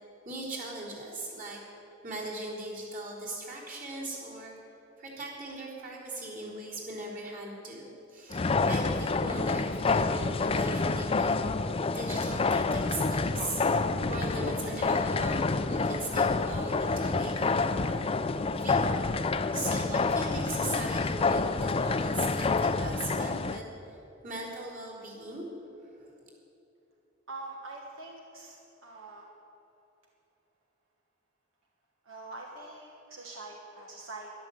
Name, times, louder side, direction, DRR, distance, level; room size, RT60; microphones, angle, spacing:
voice 1, 0.2-1.6 2.0-4.5 5.0-11.4 11.9-13.6 14.0-18.0 18.4-19.1 19.5-23.7 24.2-25.5 25.8-26.1, right 2 dB, 45° right, -5 dB, 3.7 m, -39 dB
sound 1, 8.3-23.6, left 3 dB, 30° left, 0.4 m, -28 dB
voice 2, 27.3-29.3 32.0-34.4, right 2 dB, 80° right, -1 dB, 1.4 m, -44 dB
12.0 x 11.5 x 7.7 m, 3.0 s
head